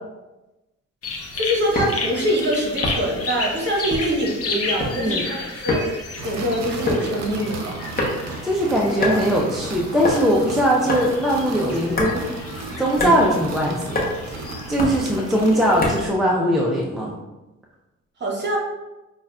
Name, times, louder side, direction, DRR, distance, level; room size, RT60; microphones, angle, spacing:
sound 1, 1.0-16.0, left 3 dB, 50° left, 0.7 m, -33 dB
voice 1, 1.4-5.8 6.2-7.8 18.2-18.6, equal, 35° right, -2 dB, 1.1 m, -24 dB
sound 2, 1.7-2.0 2.8-3.2 3.9-4.2 4.6-4.9 5.7-5.9 6.9-7.1 8.0-8.4 9.0-9.2 10.0-10.2 10.9-11.1 11.9-12.2 13.0-13.2 13.9-14.1 14.8-15.0 15.8-16.1, left 1 dB, 30° left, 0.9 m, -24 dB
voice 2, 4.9-5.3 8.4-12.2 12.8-14.0 14.7-17.1, equal, ahead, -3 dB, 0.4 m, -20 dB
sound 3, 6.2-16.2, right 3 dB, 60° right, 0.6 m, -35 dB
5.3 x 2.4 x 2.3 m, 1.0 s
cardioid pair, 90°, 30 cm